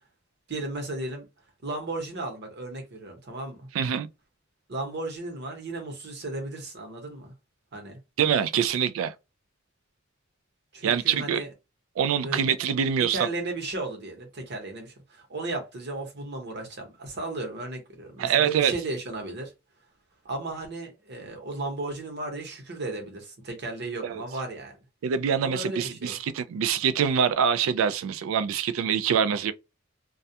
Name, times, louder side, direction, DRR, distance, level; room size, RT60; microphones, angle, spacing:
voice 1, 0.5-1.3 1.6-3.7 4.7-7.3 7.7-8.0 10.7-11.5 12.2-12.4 13.1-19.5 20.2-24.7 25.4-26.2, right 2 dB, 55° right, 0.9 m, -35 dB
voice 2, 3.7-4.1 8.2-9.1 10.8-11.4 12.0-13.3 18.2-18.7 24.0-24.2 25.0-29.5, right 7 dB, 85° right, 0.3 m, -25 dB
2.3 x 2.1 x 2.7 m
head